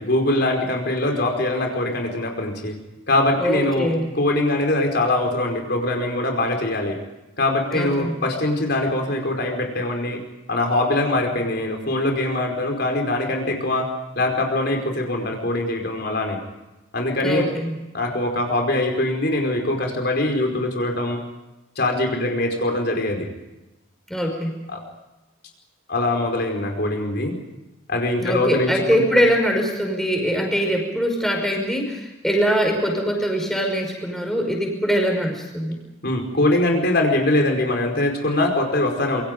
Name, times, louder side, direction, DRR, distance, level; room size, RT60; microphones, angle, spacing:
voice 1, 0.0-2.7 3.1-7.0 7.4-10.2 10.5-16.4 16.9-17.5 17.9-21.2 21.8-23.3 24.7-24.8 25.9-27.4 27.9-29.0 36.0-39.2, left 1 dB, 50° left, 3 dB, 4.9 m, -22 dB
voice 2, 3.4-4.0 7.7-8.1 17.2-17.7 24.1-24.5 28.2-35.8, equal, ahead, 2 dB, 5.6 m, -22 dB
27.5 x 24.5 x 5.3 m, 1.0 s
head